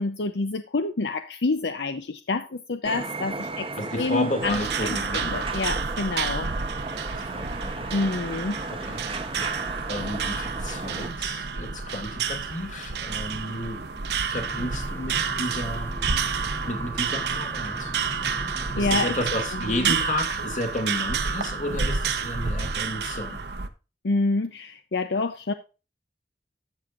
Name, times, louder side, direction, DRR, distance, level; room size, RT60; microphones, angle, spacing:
voice 1, 0.0-3.7 4.0-6.5 7.9-8.6 18.8-19.2 19.8-19.9 24.0-25.5, left 3 dB, 75° left, 8 dB, 0.7 m, -27 dB
sound 1, 2.8-11.1, right 3 dB, 30° right, 0.8 m, -36 dB
voice 2, 3.8-5.3 7.1-7.9 8.7-9.0 9.3-15.9 16.4-17.9 18.7-23.4, left 1 dB, 45° left, 5 dB, 2.2 m, -32 dB
sound 2, 4.4-23.7, right 5 dB, 65° right, 0.9 m, -29 dB
sound 3, 14.3-19.5, left 1 dB, 15° left, 0.7 m, -39 dB
13.0 x 7.2 x 2.5 m, 0.31 s
head